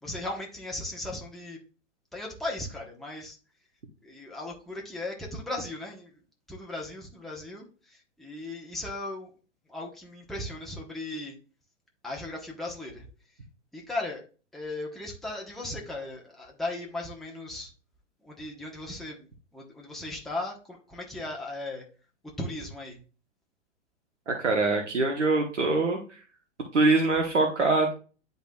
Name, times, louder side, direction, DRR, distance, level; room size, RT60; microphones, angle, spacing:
voice 1, 0.0-1.6 2.1-3.4 4.0-6.1 6.5-9.3 9.7-11.4 12.0-13.1 13.7-14.2 14.5-17.7 18.2-21.9 22.4-23.0, left 2 dB, ahead, -2 dB, 1.0 m, -37 dB
voice 2, 24.3-26.0 26.7-27.9, right 3 dB, 75° right, 3 dB, 1.2 m, -23 dB
10.5 x 4.0 x 2.3 m, 0.37 s
figure-of-eight pair, 100°, 36 cm